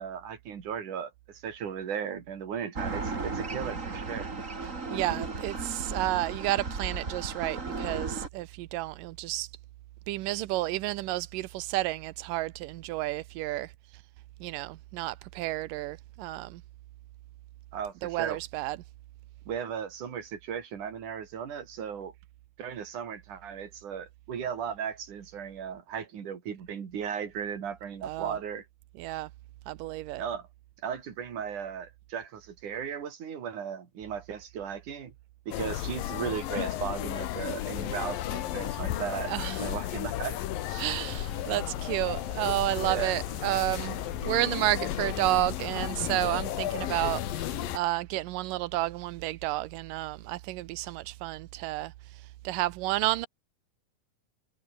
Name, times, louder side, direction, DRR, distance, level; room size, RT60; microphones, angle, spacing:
voice 1, 0.0-4.3 17.7-18.4 19.5-22.1 22.6-28.7 30.2-30.5 30.8-35.1 35.5-39.3 39.6-40.4 40.7-40.9 42.8-43.1, right 7 dB, 65° right, 4.3 m, -36 dB
sound 1, 2.8-8.3, right 4 dB, 25° right, 2.6 m, -35 dB
voice 2, 4.6-9.5 10.1-13.7 14.4-16.6 18.0-18.8 28.0-28.4 29.0-29.3 29.7-30.2 39.3-39.7 40.8-53.3, right 17 dB, 85° right, 2.4 m, -31 dB
sound 2, 35.5-47.8, left 13 dB, 85° left, 3.1 m, -33 dB
omnidirectional pair, 3.9 m